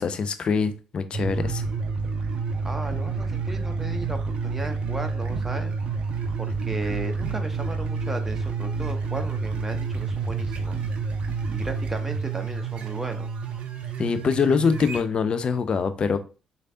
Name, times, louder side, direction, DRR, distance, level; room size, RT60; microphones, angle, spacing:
voice 1, 0.0-1.6 14.0-16.2, left 5 dB, 40° left, 0.4 m, -24 dB
sound 1, 1.1-15.0, right 4 dB, 50° right, 0.4 m, -29 dB
voice 2, 2.6-5.7 6.4-10.8 11.5-13.3, right 1 dB, 10° right, 0.6 m, -35 dB
3.2 x 2.5 x 2.6 m
figure-of-eight pair, 40°, 2 cm